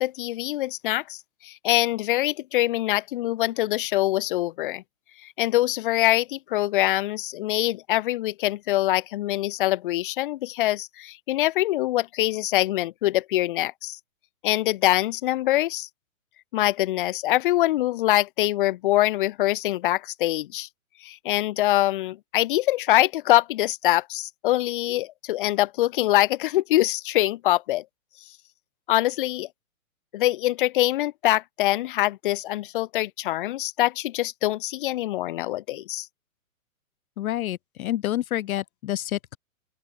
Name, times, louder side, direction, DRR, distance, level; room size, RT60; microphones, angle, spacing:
voice 1, 0.0-4.8 5.4-14.0 14.4-15.9 16.5-20.7 21.0-27.8 28.9-29.5 30.1-36.1, left 15 dB, 35° left, 0.8 m, -24 dB
voice 2, 37.2-39.4, left 13 dB, 75° left, 0.6 m, -28 dB
open air
hypercardioid pair, 150°, 43 cm